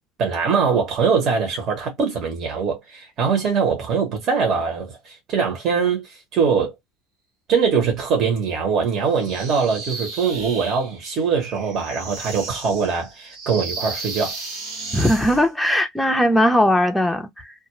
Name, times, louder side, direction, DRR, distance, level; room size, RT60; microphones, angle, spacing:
voice 1, 0.2-6.7 7.5-14.4, right 6 dB, 45° right, 1.0 m, -22 dB
sound 1, 9.1-15.5, right 3 dB, 75° right, 1.2 m, -34 dB
voice 2, 14.9-17.5, equal, ahead, 0.5 m, -19 dB
2.4 x 2.1 x 3.0 m
supercardioid pair, 115°, 0 cm